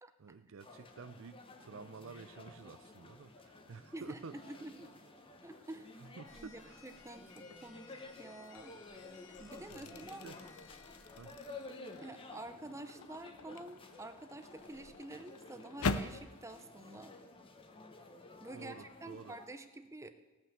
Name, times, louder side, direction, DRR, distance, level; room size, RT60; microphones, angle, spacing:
voice 1, 0.2-4.3 6.0-6.8 9.7-10.4 11.2-11.4 18.5-19.3, right 4 dB, 60° right, 0.5 m, -51 dB
sound 1, 0.6-19.5, left 2 dB, 25° left, 1.0 m, -53 dB
voice 2, 3.9-4.9 5.4-5.9 6.3-7.9 8.2-8.8 9.4-10.3 12.0-17.1 18.4-20.1, right 2 dB, 15° right, 0.6 m, -48 dB
sound 2, 6.3-11.6 13.1-14.9, left 4 dB, 60° left, 1.8 m, -61 dB
sound 3, 7.3-7.7 8.2-16.3, left 3 dB, 80° left, 0.6 m, -43 dB
17.5 x 6.0 x 7.3 m
head